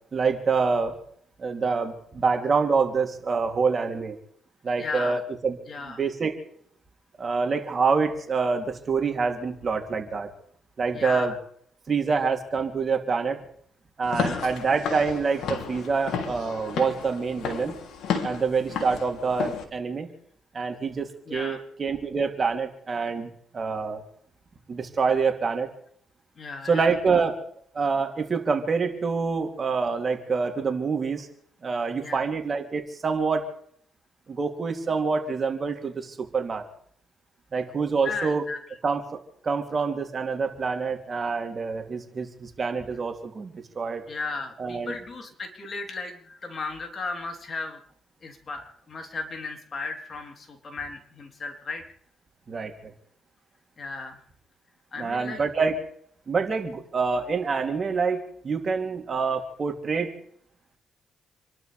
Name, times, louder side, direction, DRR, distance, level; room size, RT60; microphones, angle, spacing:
voice 1, 0.1-1.0 1.4-4.2 4.6-5.6 5.9-6.4 7.2-10.3 10.8-11.3 11.9-13.4 14.0-17.8 18.2-20.1 20.5-24.0 24.7-25.7 26.7-27.4 27.7-31.3 31.6-33.5 34.3-36.6 37.5-38.4 38.8-39.0 39.4-44.0 44.6-44.9 52.5-52.7 55.0-55.8 56.3-60.1, right 5 dB, 40° right, 3 dB, 3.2 m, -26 dB
voice 2, 4.8-5.2 5.7-6.0 10.9-11.4 14.1-14.5 21.3-21.6 26.4-26.9 32.0-32.3 38.0-38.6 44.1-47.8 48.2-51.8 53.8-54.2 54.9-55.4, left 4 dB, 40° left, 3 dB, 3.8 m, -35 dB
Walk footsteps / Siren, 14.0-19.6, left 6 dB, 75° left, 3.2 m, -32 dB
28.5 x 12.0 x 3.5 m, 0.64 s
cardioid pair, 90°, 0 cm